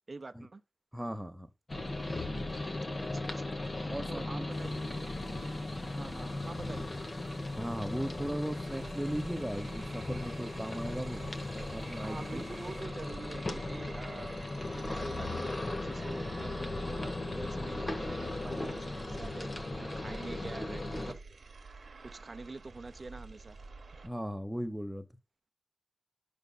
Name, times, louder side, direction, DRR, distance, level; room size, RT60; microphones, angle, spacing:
voice 1, 0.1-0.6 2.9-3.4 4.1-5.5 5.8-7.2 12.0-21.2 22.0-23.6, right 3 dB, 50° right, 0.6 m, -46 dB
voice 2, 0.9-1.5 3.9-4.5 7.6-11.2 11.5-12.4 24.0-25.1, equal, 10° right, 0.8 m, -37 dB
sound 1, 1.7-21.1, left 2 dB, 50° left, 1.0 m, -37 dB
sound 2, 4.5-12.8, left 1 dB, 80° left, 5.3 m, -56 dB
sound 3, 7.7-24.1, right 3 dB, 90° right, 0.9 m, -50 dB
10.5 x 6.8 x 2.3 m
wide cardioid pair, 85°, 0 cm